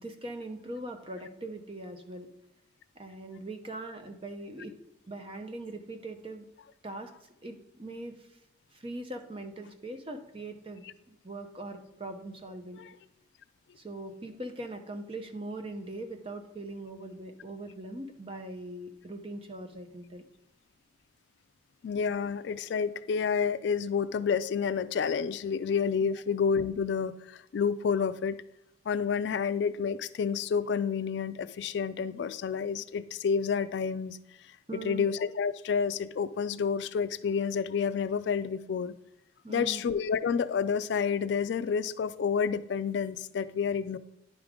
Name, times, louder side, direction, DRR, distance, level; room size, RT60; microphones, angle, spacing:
voice 1, 0.0-2.3 3.0-4.7 5.1-6.5 6.8-7.1 7.4-8.3 8.7-12.8 13.8-20.2 26.0-26.2 34.7-35.1 39.4-39.8, right 2 dB, 30° right, 6 dB, 0.7 m, -41 dB
voice 2, 21.8-28.4 28.9-34.2 34.7-38.9 39.5-44.0, left 6 dB, 70° left, 14 dB, 0.3 m, -29 dB
10.5 x 4.9 x 3.6 m, 0.88 s
head